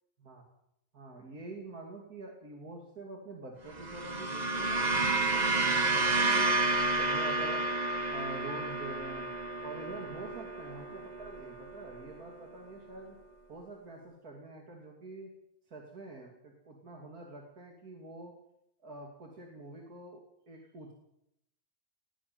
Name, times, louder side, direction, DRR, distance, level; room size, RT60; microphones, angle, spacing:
voice 1, 0.9-6.5 7.0-7.7 8.1-9.3 9.6-13.2 13.5-15.3 15.7-18.3 18.8-20.9, right 2 dB, 85° right, 0 dB, 3.3 m, -46 dB
sound 1, 3.7-12.2, right 2 dB, 30° right, 1.2 m, -31 dB
20.5 x 16.0 x 7.8 m, 0.79 s
omnidirectional pair, 1.5 m